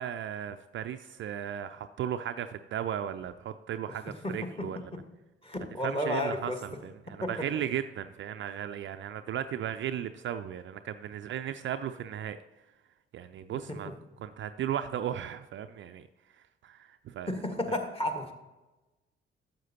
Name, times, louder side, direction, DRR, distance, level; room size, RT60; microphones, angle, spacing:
voice 1, 0.0-4.8 5.8-6.5 6.8-12.4 13.1-13.9 14.2-16.0 16.6-17.3, right 10 dB, 40° right, 9 dB, 0.4 m, -35 dB
voice 2, 3.9-5.0 5.4-6.6 13.7-13.9 17.3-18.3, left 1 dB, 20° left, 5 dB, 1.4 m, -33 dB
12.0 x 7.5 x 2.8 m, 1.1 s
figure-of-eight pair, 40°, 30 cm